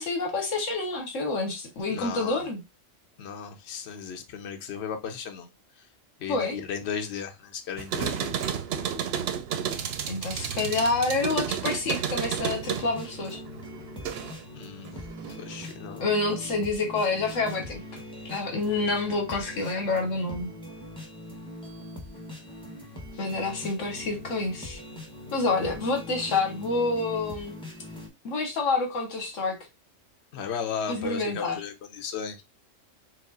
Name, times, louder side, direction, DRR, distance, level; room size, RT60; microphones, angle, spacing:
voice 1, 0.0-2.6 6.3-6.6 10.1-13.4 16.0-17.8 18.2-20.5 23.2-24.8 25.3-27.6 28.2-29.6 30.9-31.6, left 3 dB, 75° left, 1.4 m, -28 dB
voice 2, 1.9-2.5 3.2-5.5 6.2-8.3 14.5-14.9 15.3-16.1 23.1-23.2 30.3-32.4, left 7 dB, 60° left, 1.0 m, -35 dB
sound 1, 7.8-14.5 14.9-15.7, right 8 dB, 65° right, 0.7 m, -32 dB
sound 2, 12.4-28.1, left 1 dB, 5° left, 1.0 m, -42 dB
4.7 x 2.0 x 3.9 m
omnidirectional pair, 1.3 m